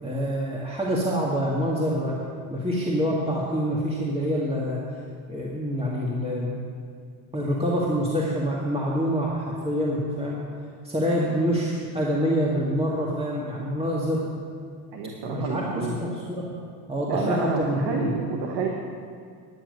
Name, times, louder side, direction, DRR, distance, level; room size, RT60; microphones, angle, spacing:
voice 1, 0.0-2.2 2.5-4.8 5.3-6.6 7.3-10.4 10.8-14.3 15.3-16.5 16.9-18.1, equal, 15° right, -5 dB, 2.1 m, -26 dB
voice 2, 14.9-16.0 17.1-18.7, right 4 dB, 70° right, 1 dB, 1.5 m, -28 dB
10.5 x 9.1 x 6.7 m, 2.3 s
supercardioid pair, 80°, 43 cm